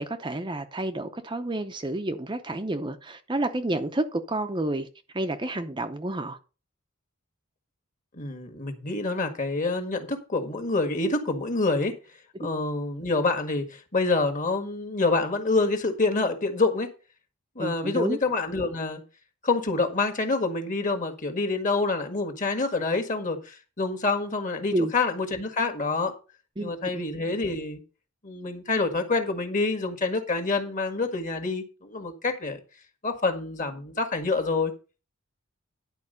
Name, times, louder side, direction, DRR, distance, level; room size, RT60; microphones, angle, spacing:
voice 1, 0.0-4.9 5.1-6.4 17.6-18.2 24.7-24.9 26.6-26.7, right 1 dB, 20° right, 0.7 m, -29 dB
voice 2, 8.2-11.9 12.4-16.9 17.6-19.0 19.4-26.1 26.6-27.8 28.2-32.6 33.0-34.7, left 3 dB, 35° left, 1.8 m, -27 dB
11.0 x 4.7 x 6.6 m
head